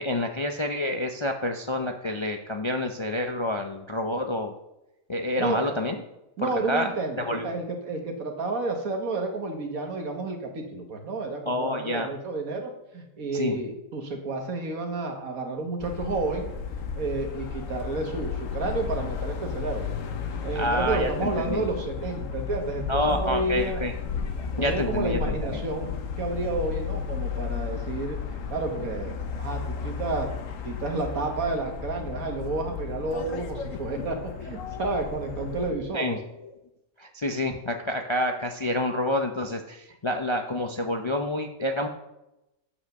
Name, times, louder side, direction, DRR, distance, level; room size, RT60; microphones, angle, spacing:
voice 1, 0.0-4.5 5.1-6.0 6.4-6.9 7.3-7.5 11.5-12.1 13.3-13.6 20.5-21.7 22.9-23.9 24.6-25.6 35.9-36.2 37.0-41.9, left 1 dB, 40° left, 4 dB, 0.4 m, -28 dB
voice 2, 5.4-5.7 6.4-7.2 7.4-16.5 17.0-19.9 20.4-23.8 24.5-25.9 26.2-29.1 29.4-30.3 30.6-36.2, right 3 dB, 90° right, 3 dB, 1.9 m, -31 dB
sound 1, 15.8-35.7, left 6 dB, 70° left, 1.3 m, -33 dB
8.4 x 5.1 x 6.5 m, 0.93 s
omnidirectional pair, 1.4 m